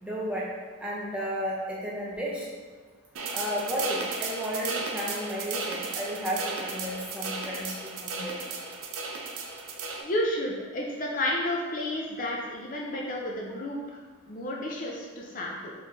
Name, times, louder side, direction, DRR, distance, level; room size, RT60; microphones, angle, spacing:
voice 1, 0.0-0.5 0.8-2.5 3.3-8.6, equal, 5° right, -5 dB, 0.6 m, -33 dB
sound 1, 3.1-10.0, right 4 dB, 75° right, 0.5 m, -35 dB
voice 2, 10.0-13.8 14.3-15.7, left 1 dB, 40° left, -2 dB, 0.5 m, -31 dB
4.2 x 3.1 x 3.5 m, 1.5 s
head